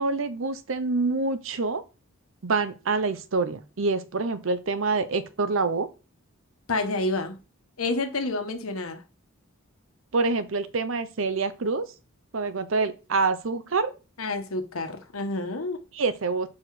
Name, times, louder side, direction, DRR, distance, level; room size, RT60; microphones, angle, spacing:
voice 1, 0.0-1.8 2.4-5.9 10.1-11.8 12.3-13.9 15.9-16.5, right 3 dB, 65° right, 0.7 m, -26 dB
voice 2, 6.7-7.4 7.8-9.0 14.2-15.8, left 2 dB, 80° left, 1.2 m, -29 dB
5.8 x 4.8 x 4.8 m
head